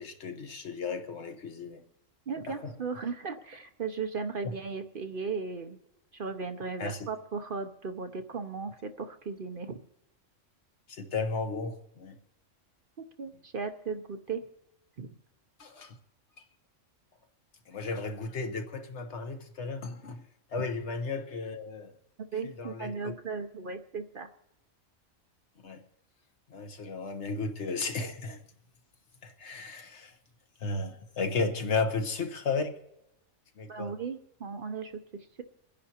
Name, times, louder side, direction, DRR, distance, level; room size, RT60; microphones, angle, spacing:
voice 1, 0.0-1.8 2.5-2.7 4.4-4.5 6.8-7.1 10.9-12.2 15.6-15.9 17.7-20.2 20.5-21.9 22.6-23.1 25.6-25.8 26.5-28.4 29.2-30.1 30.6-32.8 33.6-33.9, left 4 dB, 65° left, 1.3 m, -34 dB
voice 2, 2.3-5.8 6.1-9.8 13.0-14.4 15.0-15.1 22.3-24.3 33.7-35.4, right 5 dB, 50° right, 0.8 m, -36 dB
28.0 x 10.5 x 2.9 m
omnidirectional pair, 1.3 m